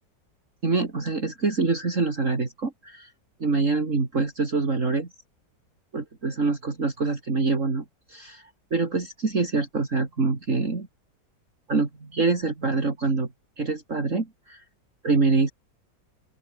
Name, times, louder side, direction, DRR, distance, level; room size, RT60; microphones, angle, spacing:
voice 1, 0.6-3.1 3.4-5.1 5.9-10.9 11.7-13.3 13.6-14.6 15.0-15.5, right 3 dB, 45° right, 3.3 m, -25 dB
open air
omnidirectional pair, 1.9 m